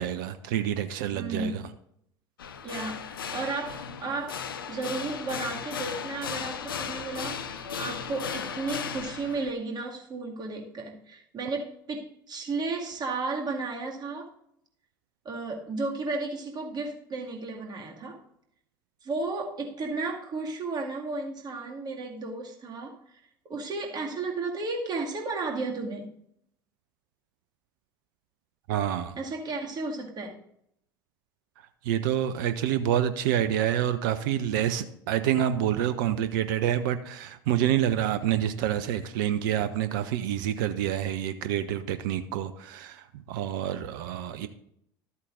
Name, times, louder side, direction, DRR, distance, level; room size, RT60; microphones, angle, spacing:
voice 1, 0.0-1.7 28.7-29.2 31.8-44.5, right 10 dB, 65° right, 12 dB, 0.6 m, -27 dB
voice 2, 1.1-1.7 2.6-14.3 15.2-18.2 19.0-23.2 23.5-26.2 29.2-30.4, right 3 dB, 35° right, 0 dB, 2.2 m, -34 dB
sound 1, 2.4-9.5, left 7 dB, 80° left, 0.6 m, -36 dB
13.0 x 8.2 x 2.6 m, 0.72 s
figure-of-eight pair, 65°, 12 cm